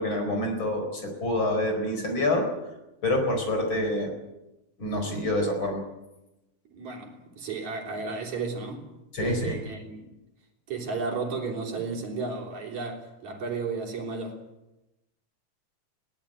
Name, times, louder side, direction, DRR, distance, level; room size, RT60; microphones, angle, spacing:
voice 1, 0.0-2.5 3.0-4.1 4.8-5.8 9.1-9.6, left 1 dB, 40° left, 5.1 m, -27 dB
voice 2, 6.7-8.9 9.2-10.1 10.7-14.4, right 4 dB, 65° right, 4.5 m, -33 dB
21.5 x 17.5 x 9.0 m
omnidirectional pair, 3.6 m